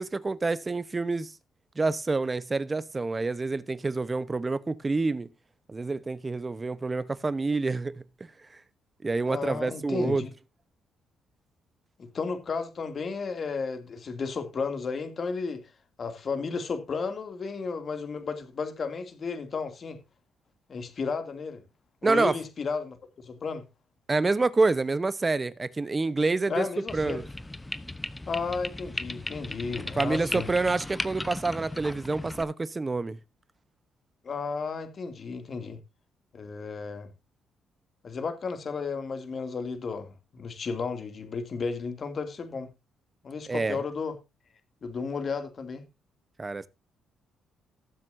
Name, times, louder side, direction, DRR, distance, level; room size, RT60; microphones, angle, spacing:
voice 1, 0.0-1.3 1.8-5.3 5.7-8.0 9.0-10.3 22.0-22.4 24.1-26.7 26.9-27.2 30.0-33.2 43.5-43.8 46.4-46.7, right 3 dB, 25° right, 0.9 m, -27 dB
voice 2, 9.3-10.3 12.0-15.6 16.0-20.0 20.7-21.6 22.0-23.0 23.2-23.6 26.5-27.2 28.3-30.5 34.2-35.8 36.3-37.1 38.0-42.7 43.2-44.2 44.8-45.8, left 5 dB, 45° left, 2.5 m, -33 dB
sound 1, 26.9-32.4, left 2 dB, 15° left, 0.9 m, -37 dB
19.5 x 7.7 x 2.7 m
cardioid pair, 90°, 0 cm